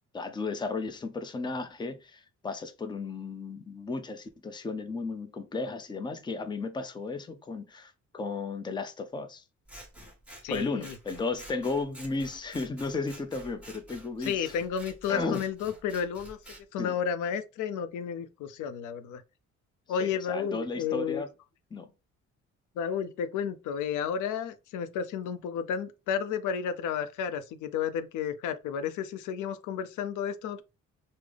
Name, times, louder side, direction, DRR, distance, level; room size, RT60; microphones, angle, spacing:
voice 1, 0.1-9.4 10.5-14.5 15.1-15.4 16.8-17.0 20.0-21.3 21.7-21.9, left 3 dB, 15° left, 0.5 m, -34 dB
Scissors, 9.7-16.6, right 1 dB, 5° right, 1.1 m, -49 dB
voice 2, 10.4-10.9 14.2-16.4 16.7-19.2 19.9-21.2 22.8-30.6, left 7 dB, 80° left, 0.5 m, -32 dB
3.6 x 2.0 x 3.2 m
cardioid pair, 90°, 30 cm